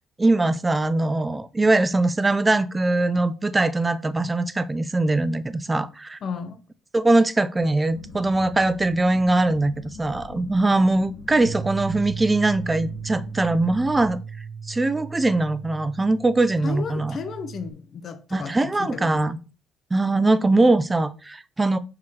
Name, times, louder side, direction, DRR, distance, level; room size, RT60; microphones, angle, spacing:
voice 1, 0.2-6.2 6.9-9.7 10.0-14.2 14.7-17.2 18.3-19.4 19.9-21.8, right 2 dB, 10° right, 0.4 m, -21 dB
voice 2, 6.2-6.6 16.6-19.4, left 6 dB, 40° left, 0.8 m, -34 dB
sound 1, 7.9-14.1, left 4 dB, 75° left, 1.6 m, -43 dB
Bass guitar, 11.5-17.7, right 6 dB, 80° right, 0.7 m, -36 dB
5.5 x 4.8 x 4.6 m
cardioid pair, 175°, 0 cm